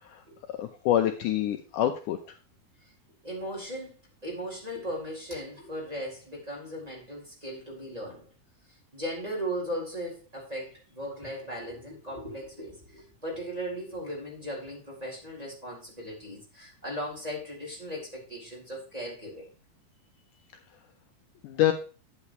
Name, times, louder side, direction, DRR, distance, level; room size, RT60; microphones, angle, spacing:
voice 1, 0.6-2.2 21.4-21.7, left 12 dB, 85° left, 1.8 m, -26 dB
voice 2, 3.2-4.0 4.2-8.3 8.7-19.5, equal, 10° right, 3.6 m, -37 dB
11.5 x 8.7 x 3.1 m
omnidirectional pair, 4.5 m